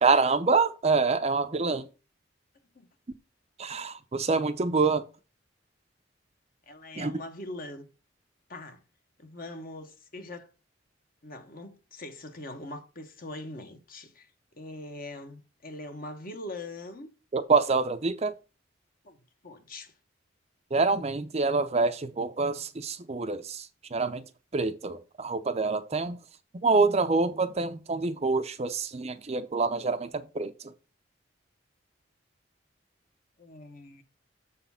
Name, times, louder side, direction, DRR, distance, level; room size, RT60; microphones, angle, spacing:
voice 1, 0.0-1.9 3.6-5.0 7.0-7.1 17.3-18.3 20.7-23.7 23.9-24.2 24.5-26.2 26.6-30.5, right 4 dB, 35° right, 0.5 m, -26 dB
voice 2, 6.7-7.9 8.5-8.8 9.2-10.5 11.2-14.3 14.5-17.1 19.0-19.2 19.4-19.9 33.4-34.0, left 2 dB, 45° left, 1.3 m, -42 dB
7.2 x 4.1 x 5.6 m
head